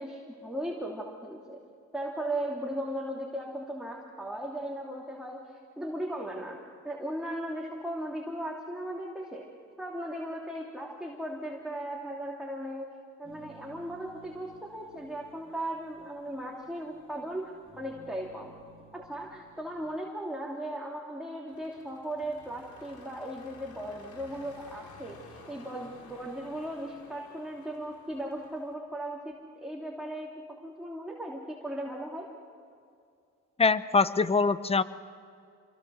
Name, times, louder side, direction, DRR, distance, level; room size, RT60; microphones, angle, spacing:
voice 1, 0.0-1.6 1.9-6.6 6.8-9.5 9.8-12.9 13.2-18.5 18.9-29.3 29.6-30.3 30.6-32.3, right 1 dB, ahead, -2 dB, 3.0 m, -37 dB
sound 1, 13.2-20.0, right 1 dB, 20° right, 3.4 m, -57 dB
sound 2, 21.5-28.7, left 4 dB, 80° left, 3.3 m, -53 dB
voice 2, 33.6-34.8, left 4 dB, 20° left, 14 dB, 0.8 m, -23 dB
28.0 x 22.5 x 6.4 m, 2.4 s
cardioid pair, 90°, 30 cm